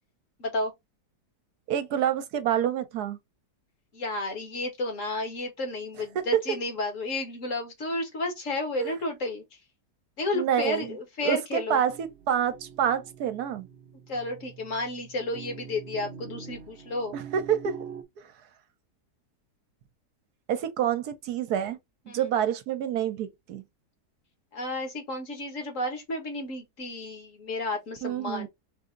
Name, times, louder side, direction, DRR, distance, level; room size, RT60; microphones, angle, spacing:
voice 1, 0.4-0.7 3.9-9.4 10.2-11.8 14.1-17.2 22.1-22.2 24.5-28.5, left 2 dB, 50° left, 1.7 m, -32 dB
voice 2, 1.7-3.2 6.1-6.4 8.8-8.9 10.3-10.9 11.2-13.7 17.1-17.8 18.2-18.3 20.5-21.8 22.1-23.6 28.0-28.5, right 9 dB, 70° right, 1.2 m, -27 dB
sound 1, 11.8-18.0, right 7 dB, 55° right, 0.8 m, -44 dB
4.2 x 2.7 x 3.6 m
omnidirectional pair, 1.8 m